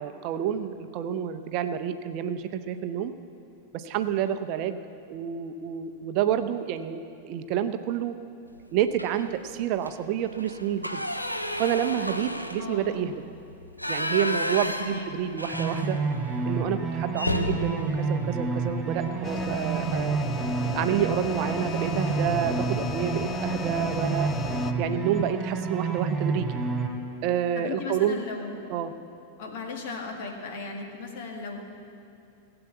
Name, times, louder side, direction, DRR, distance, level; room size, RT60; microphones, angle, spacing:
voice 1, 0.0-3.1 3.7-4.8 5.1-8.2 8.7-11.0 11.6-13.1 13.9-16.0 16.5-20.2 20.7-24.3 24.8-26.5 27.2-28.2 28.7-28.9, right 9 dB, 45° right, 9 dB, 0.6 m, -29 dB
sound 1, 8.9-9.4 9.7-9.9 10.3-16.3 16.6-16.7 17.1-19.3 20.6-20.9 21.3-21.4 21.7-22.3, left 1 dB, 90° left, 0.7 m, -33 dB
voice 2, 12.6-13.1 14.8-15.2 17.2-17.4 24.9-25.1 27.6-28.6 29.4-31.6, left 4 dB, 50° left, 2 dB, 1.8 m, -37 dB
sound 2, 15.5-26.9, right 4 dB, 15° right, 2.7 m, -29 dB
sound 3, 19.2-24.7, left 6 dB, 25° left, 0.6 m, -35 dB
16.0 x 7.9 x 8.2 m, 2.5 s
figure-of-eight pair, 90°, 0 cm